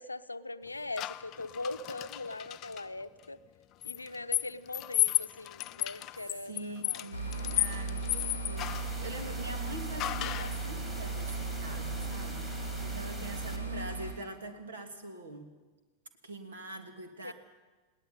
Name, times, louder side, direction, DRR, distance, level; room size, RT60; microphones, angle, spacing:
voice 1, 0.0-3.4 3.8-7.1 17.2-17.3, left 2 dB, 80° left, 11 dB, 0.8 m, -41 dB
sound 1, 1.0-2.8 3.8-9.0 10.0-10.6, left 16 dB, 35° left, 0.6 m, -33 dB
voice 2, 6.4-15.5 16.2-17.3, right 2 dB, 65° right, 7 dB, 2.8 m, -44 dB
sound 2, 7.1-14.1, right 3 dB, 85° right, 3.9 m, -37 dB
sound 3, 8.6-13.6, right 1 dB, 10° right, 3.6 m, -46 dB
20.5 x 18.0 x 9.3 m, 1.3 s
figure-of-eight pair, 90°, 0 cm